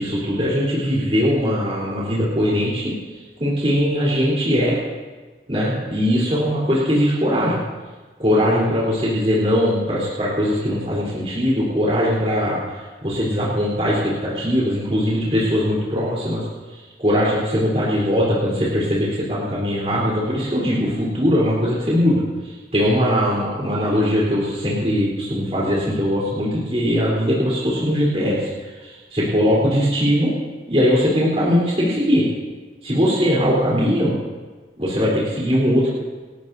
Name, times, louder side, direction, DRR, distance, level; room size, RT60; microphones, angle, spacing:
voice 1, 0.0-2.9 3.4-4.8 5.5-7.6 8.2-16.5 16.7-30.3 30.7-32.3 32.8-34.1 34.8-35.9, equal, 35° right, -6 dB, 3.9 m, -20 dB
28.0 x 12.5 x 2.8 m, 1.3 s
head